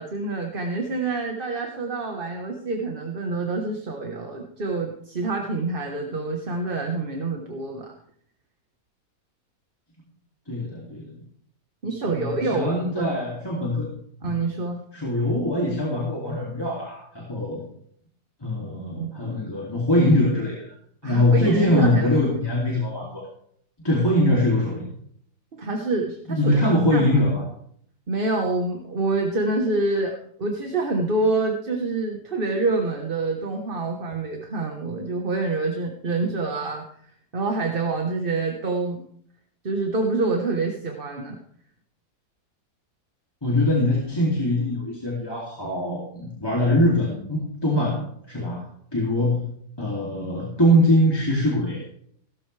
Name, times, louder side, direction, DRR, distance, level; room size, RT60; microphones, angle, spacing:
voice 1, 0.0-7.9 11.8-13.1 14.2-14.8 19.0-19.4 21.0-22.1 25.5-27.1 28.1-36.9 37.3-39.0 39.6-41.4, right 3 dB, 35° right, 2 dB, 1.4 m, -27 dB
voice 2, 10.5-11.2 12.1-13.9 14.2-14.4 14.9-17.6 18.4-20.7 21.0-23.3 23.8-24.9 26.3-27.4 43.4-48.0 48.3-48.6 48.9-49.4 49.8-51.8, left 1 dB, 15° left, -4 dB, 2.7 m, -22 dB
17.0 x 13.0 x 3.3 m, 0.65 s
omnidirectional pair, 1.7 m